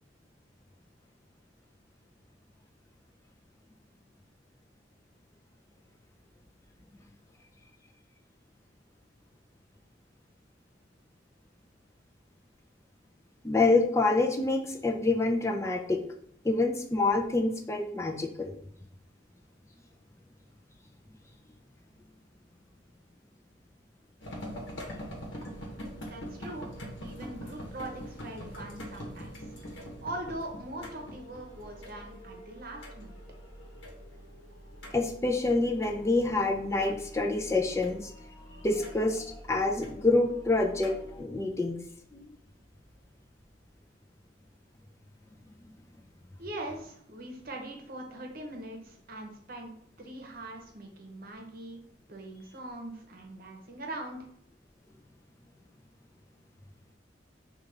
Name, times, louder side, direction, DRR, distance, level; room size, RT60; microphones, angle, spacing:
voice 1, 13.4-16.0 16.4-18.5 34.9-38.1 38.6-41.8 42.1-42.3, left 2 dB, 15° left, 2 dB, 0.5 m, -27 dB
sound 1, 24.2-41.2, equal, 90° left, 0.9 m, -44 dB
voice 2, 26.1-26.7 27.0-29.5 30.0-33.2 46.4-51.8 52.1-54.2, right 1 dB, 55° right, 2 dB, 0.9 m, -41 dB
5.0 x 2.4 x 3.3 m, 0.68 s
head